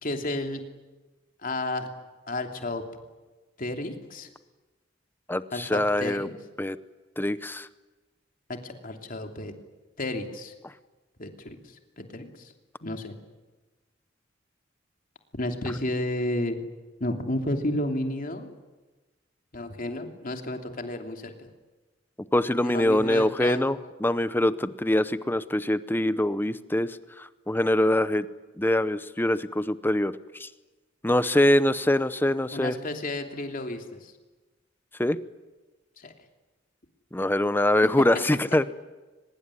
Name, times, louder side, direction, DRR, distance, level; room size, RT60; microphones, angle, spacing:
voice 1, 0.0-0.6 1.4-1.9 2.3-2.8 3.6-4.3 5.5-6.4 8.5-9.5 10.0-10.5 11.2-11.6 12.0-12.5 12.8-13.1 15.3-16.6 17.0-18.5 19.5-21.3 22.6-23.6 32.5-34.1 36.0-36.1, left 1 dB, 45° left, 5 dB, 2.9 m, -32 dB
voice 2, 5.3-6.3 6.6-6.8 7.2-7.7 22.3-28.3 28.6-30.1 30.4-30.5 31.0-32.7 35.0-35.2 37.1-38.7, left 1 dB, 10° left, 14 dB, 0.7 m, -24 dB
23.5 x 21.5 x 9.8 m, 1.2 s
head